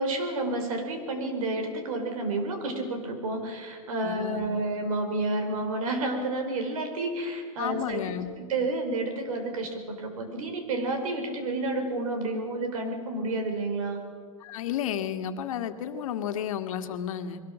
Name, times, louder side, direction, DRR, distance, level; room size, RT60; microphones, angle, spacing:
voice 1, 0.0-8.1 8.4-14.0, right 2 dB, 75° right, 6 dB, 4.7 m, -30 dB
voice 2, 4.0-4.6 7.6-8.4 14.4-17.4, left 9 dB, 70° left, 7 dB, 1.8 m, -32 dB
22.0 x 18.5 x 7.5 m, 2.1 s
supercardioid pair, 160°, 18 cm